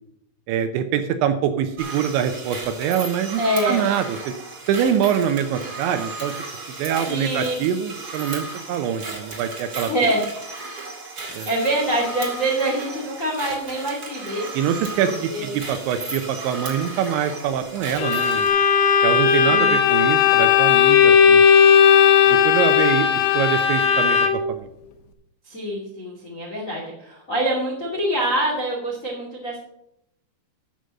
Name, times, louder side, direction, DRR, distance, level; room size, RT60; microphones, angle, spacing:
voice 1, 0.5-3.4 3.7-4.3 4.7-6.3 6.8-9.9 11.3-11.5 14.5-18.5 19.0-21.4 22.3-24.7, right 9 dB, 80° right, 8 dB, 2.8 m, -24 dB
sound 1, 1.8-18.5, right 3 dB, 55° right, 1.0 m, -35 dB
voice 2, 3.4-3.9 7.1-7.5 9.9-10.2 11.4-14.5 15.0-15.5 19.5-19.8 20.2-20.3 25.4-29.6, right 1 dB, 50° left, -2 dB, 0.9 m, -25 dB
Bowed string instrument, 18.0-24.6, left 8 dB, 75° left, 2.5 m, -16 dB
11.5 x 6.9 x 6.4 m, 0.78 s
omnidirectional pair, 5.7 m